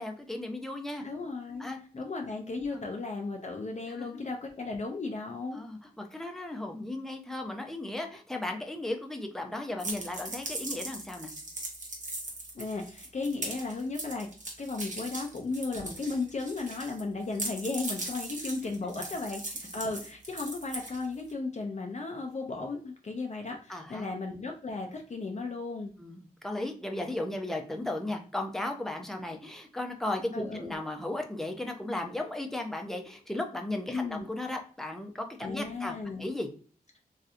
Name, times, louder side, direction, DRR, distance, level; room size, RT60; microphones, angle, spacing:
voice 1, 0.0-1.0 1.6-1.8 2.7-2.8 4.1-4.2 5.5-11.3 23.7-24.1 26.0-36.5, left 1 dB, ahead, 2 dB, 0.6 m, -35 dB
voice 2, 1.0-1.7 1.9-5.6 12.5-14.3 14.6-25.9 30.3-30.7 33.9-34.2 35.4-36.3, left 3 dB, 45° left, 2 dB, 0.5 m, -35 dB
sound 1, 9.8-17.0 17.3-21.3, right 2 dB, 50° right, 1.0 m, -39 dB
3.2 x 2.7 x 2.4 m, 0.41 s
wide cardioid pair, 75°, 16 cm